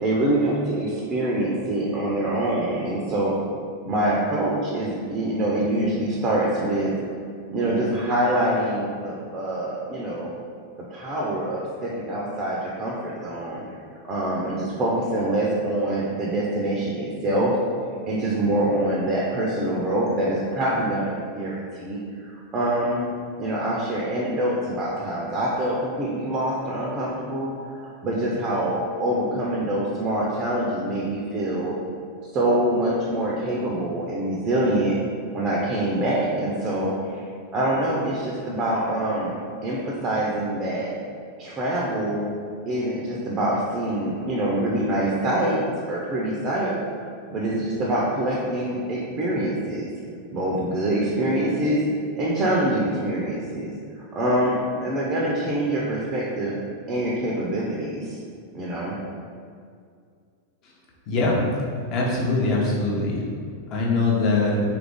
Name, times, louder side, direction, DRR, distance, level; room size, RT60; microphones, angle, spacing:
voice 1, 0.0-3.3 3.8-6.9 7.5-10.3 10.8-13.6 14.1-17.6 18.1-23.1 23.4-27.5 27.8-31.7 32.2-35.0 35.3-37.2 37.5-40.9 41.4-42.3 42.7-45.6 45.9-46.7 47.0-49.9 50.3-51.8 52.2-53.7 54.1-56.5 56.9-58.2 58.5-59.0, right 1 dB, 30° right, -4 dB, 0.5 m, -25 dB
voice 2, 61.1-61.4 61.9-63.2 63.7-64.6, left 3 dB, 35° left, -4 dB, 0.8 m, -22 dB
3.2 x 2.4 x 3.5 m, 2.3 s
figure-of-eight pair, 90°, 0 cm